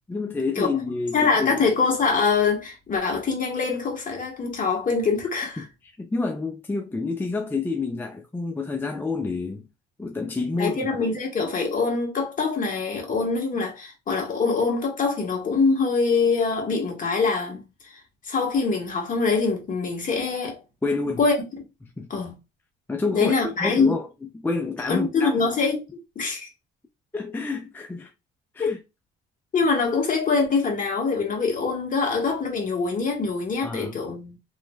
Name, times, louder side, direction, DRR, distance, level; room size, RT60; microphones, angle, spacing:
voice 1, 0.1-1.7 5.6-5.7 6.0-9.7 10.0-11.0 20.8-21.3 22.0-22.1 22.9-23.3 23.6-25.3 27.1-28.1 28.5-28.8 33.6-34.0, left 3 dB, 10° left, 0.4 m, -28 dB
voice 2, 1.1-5.6 10.6-18.0 18.2-20.6 21.2-21.4 22.1-22.3 23.1-23.9 24.9-25.9 26.1-26.5 28.6-28.7 29.5-34.4, left 4 dB, 40° left, 1.4 m, -24 dB
3.1 x 3.1 x 2.2 m
cardioid pair, 105°, 21 cm